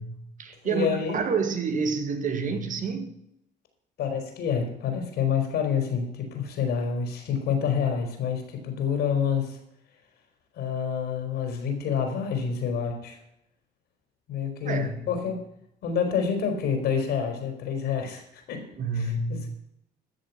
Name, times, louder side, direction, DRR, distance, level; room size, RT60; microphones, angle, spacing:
voice 1, 0.0-3.2 14.7-15.1 18.7-19.5, right 4 dB, 50° right, 2.0 m, -29 dB
voice 2, 0.6-1.2 4.0-9.6 10.6-13.2 14.3-15.4 15.8-18.7 18.9-19.5, left 7 dB, 70° left, 4.2 m, -28 dB
14.0 x 6.8 x 7.2 m
cardioid pair, 110°, 17 cm